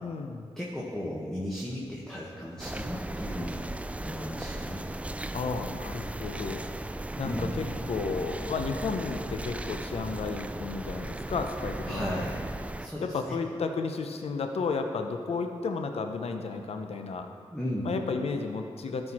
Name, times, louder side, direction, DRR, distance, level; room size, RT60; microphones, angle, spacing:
voice 1, 0.0-0.5 5.3-6.7 7.2-12.3 13.0-17.3 17.8-19.1, left 4 dB, 75° left, 5 dB, 0.7 m, -33 dB
voice 2, 0.6-3.6 4.0-4.9 7.2-7.5 11.9-12.5 12.8-13.4 17.5-18.0, equal, 5° left, -6 dB, 1.5 m, -35 dB
sound 1, 2.6-12.9, right 1 dB, 10° right, 0.4 m, -36 dB
13.0 x 4.5 x 4.3 m, 2.3 s
cardioid pair, 55°, 10 cm